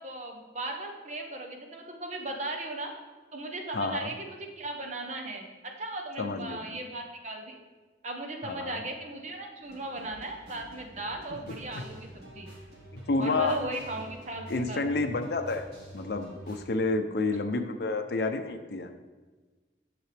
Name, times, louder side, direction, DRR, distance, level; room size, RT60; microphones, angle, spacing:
voice 1, 0.0-2.9 3.3-7.6 8.0-12.5 13.2-14.8, right 2 dB, 40° right, 3 dB, 0.9 m, -37 dB
voice 2, 3.7-4.1 6.2-6.6 8.4-8.8 12.9-13.6 14.5-15.7 15.9-18.9, left 3 dB, 60° left, 7 dB, 0.5 m, -29 dB
sound 1, 9.6-16.6, right 1 dB, 60° right, 2.2 m, -48 dB
9.4 x 6.7 x 3.4 m, 1.3 s
head